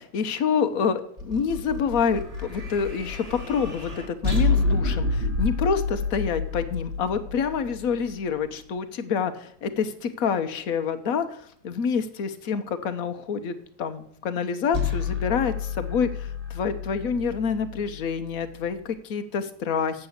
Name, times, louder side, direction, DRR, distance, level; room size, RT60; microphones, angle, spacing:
voice 1, 0.0-20.1, left 6 dB, 75° left, 9 dB, 1.3 m, -27 dB
sound 1, 1.2-8.5 14.7-18.8, left 4 dB, 25° right, 1.8 m, -29 dB
8.7 x 6.8 x 8.0 m, 0.65 s
omnidirectional pair, 1.5 m